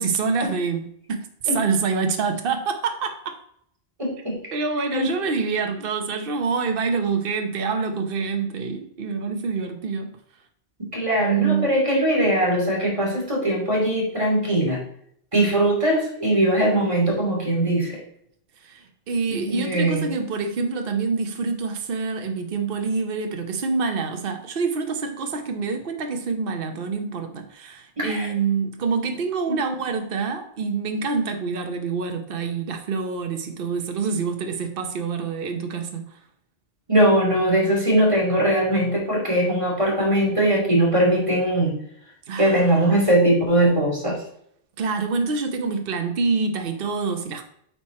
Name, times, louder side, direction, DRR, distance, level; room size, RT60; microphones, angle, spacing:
voice 1, 0.0-1.3 1.5-3.4 4.5-10.2 11.2-11.7 18.6-36.2 42.3-42.9 44.8-47.5, right 5 dB, 55° right, 5 dB, 1.1 m, -26 dB
voice 2, 4.0-4.4 4.9-5.1 10.9-14.8 15.3-18.0 19.3-20.1 28.0-28.3 36.9-41.8 42.4-44.2, right 1 dB, 25° right, -2 dB, 2.6 m, -20 dB
8.1 x 4.7 x 4.2 m, 0.68 s
omnidirectional pair, 1.2 m